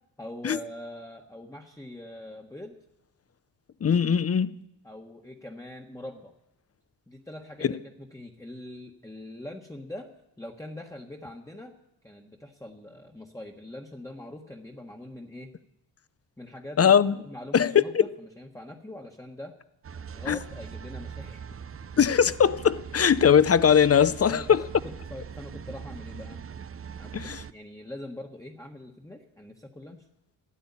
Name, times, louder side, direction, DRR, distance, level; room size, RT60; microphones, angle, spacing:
voice 1, 0.2-2.7 4.8-6.3 7.1-10.1 10.4-11.7 12.0-15.5 16.4-16.9 17.2-19.5 20.1-21.5 24.3-24.6 24.8-26.4 27.0-30.0, left 1 dB, 5° left, 1.5 m, -43 dB
voice 2, 3.8-4.5 7.6-7.8 16.8-17.2 17.5-18.0 20.3-20.4 22.0-24.6 27.1-27.4, left 8 dB, 30° left, 0.7 m, -20 dB
sound 1, 19.8-27.5, right 7 dB, 30° right, 0.6 m, -41 dB
12.5 x 8.4 x 9.9 m
cardioid pair, 70°, 46 cm